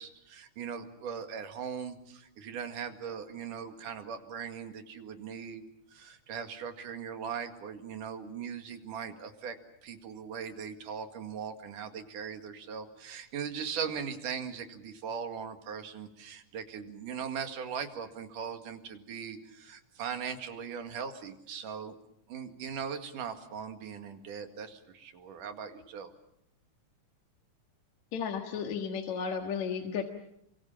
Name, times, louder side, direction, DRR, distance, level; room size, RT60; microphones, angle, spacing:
voice 1, 0.0-5.6 5.9-9.6 9.8-22.0 22.3-26.1, right 7 dB, 80° right, 7 dB, 3.6 m, -39 dB
voice 2, 28.1-30.0, left 6 dB, 65° left, 4 dB, 2.8 m, -33 dB
28.5 x 24.5 x 7.3 m, 0.76 s
omnidirectional pair, 3.7 m